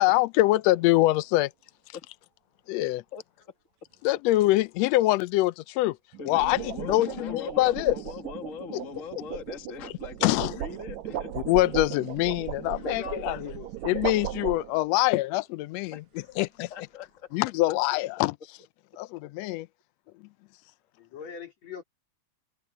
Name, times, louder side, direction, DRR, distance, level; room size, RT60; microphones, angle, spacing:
voice 1, 0.0-1.5 2.7-3.0 4.0-6.0 6.3-7.9 10.2-10.5 11.4-13.5 13.8-16.0 16.4-16.7 17.3-18.3 19.0-19.7, left 17 dB, 85° left, 1.5 m, -24 dB
sound 1, 0.7-1.0 6.1-15.0, right 12 dB, 70° right, 2.1 m, -37 dB
voice 2, 3.1-3.5 6.2-11.6 15.9-16.0 16.7-17.3, left 5 dB, 30° left, 1.9 m, -41 dB
voice 3, 12.7-14.0 14.6-14.7 21.0-21.8, left 5 dB, 60° left, 4.5 m, -42 dB
omnidirectional pair, 3.6 m